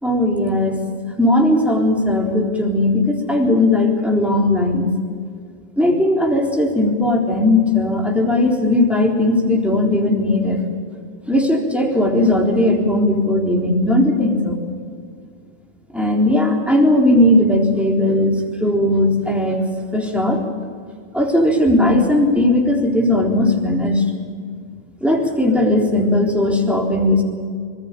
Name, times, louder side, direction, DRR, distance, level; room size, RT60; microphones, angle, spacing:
voice 1, 0.0-0.8 1.2-4.9 5.8-10.6 11.3-14.6 15.9-19.6 19.9-20.4 21.1-24.0 25.0-27.2, left 1 dB, ahead, -1 dB, 3.9 m, -17 dB
26.0 x 19.5 x 7.0 m, 2.1 s
omnidirectional pair, 1.3 m